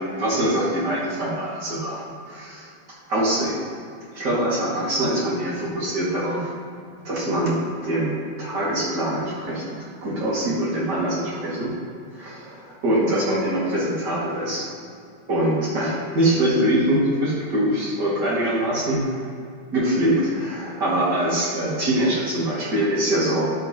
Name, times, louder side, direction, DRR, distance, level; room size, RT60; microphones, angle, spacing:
voice 1, 0.0-2.7 3.1-3.6 4.1-6.5 7.0-11.7 12.1-14.7 15.3-19.1 19.7-23.4, right 1 dB, 60° right, -7 dB, 3.0 m, -23 dB
13.0 x 7.2 x 3.0 m, 2.3 s
omnidirectional pair, 2.1 m